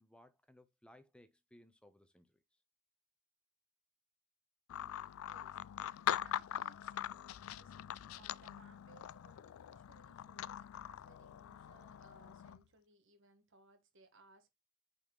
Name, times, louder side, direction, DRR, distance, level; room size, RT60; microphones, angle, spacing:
voice 1, 0.0-2.6, left 1 dB, 5° left, 0.9 m, -63 dB
sound 1, 4.7-12.6, left 10 dB, 85° left, 0.3 m, -42 dB
voice 2, 5.3-5.6 6.0-14.5, right 3 dB, 65° right, 1.6 m, -66 dB
8.7 x 4.3 x 3.1 m
head